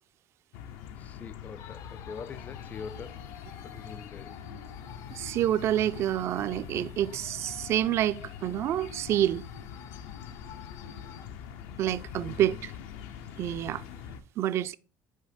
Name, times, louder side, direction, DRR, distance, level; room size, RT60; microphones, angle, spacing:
sound 1, 0.5-14.2, left 8 dB, 90° left, 0.7 m, -44 dB
voice 1, 1.0-3.3 3.6-4.3 12.2-12.7, left 6 dB, 25° left, 0.4 m, -43 dB
sound 2, 1.6-11.3, left 6 dB, 60° left, 0.8 m, -50 dB
voice 2, 5.1-9.4 11.8-12.7 13.4-13.8 14.4-14.8, right 11 dB, 50° right, 0.4 m, -28 dB
6.4 x 5.0 x 5.0 m
cardioid pair, 135°, 6 cm